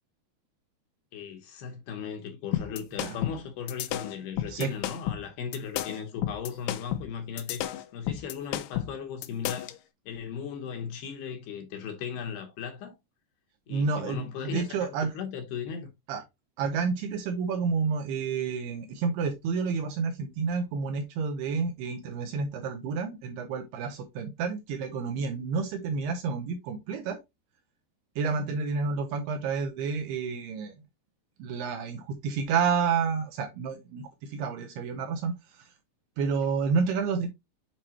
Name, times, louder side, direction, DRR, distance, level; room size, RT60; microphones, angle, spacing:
voice 1, 1.1-9.7 10.1-12.9 13.7-15.9, left 7 dB, 70° left, 2.7 m, -37 dB
sound 1, 2.5-9.8, left 12 dB, 90° left, 3.1 m, -33 dB
voice 2, 13.7-15.1 16.1-16.2 16.6-27.2 28.2-30.7 31.4-35.6 36.2-37.3, right 5 dB, 80° right, 2.4 m, -30 dB
7.6 x 4.6 x 2.8 m
omnidirectional pair, 5.3 m